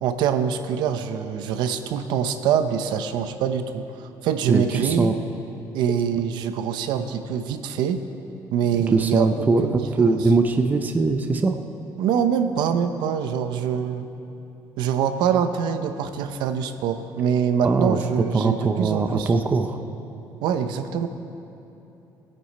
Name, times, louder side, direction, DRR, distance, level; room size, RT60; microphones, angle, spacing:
voice 1, 0.0-5.1 5.7-8.0 8.5-10.3 12.0-14.1 14.8-19.3 20.4-21.1, right 8 dB, 85° right, 9 dB, 0.8 m, -24 dB
voice 2, 4.5-5.1 8.9-11.6 17.6-19.8, right 3 dB, 25° right, 7 dB, 0.6 m, -21 dB
17.5 x 9.9 x 4.3 m, 3.0 s
cardioid pair, 125°, 7 cm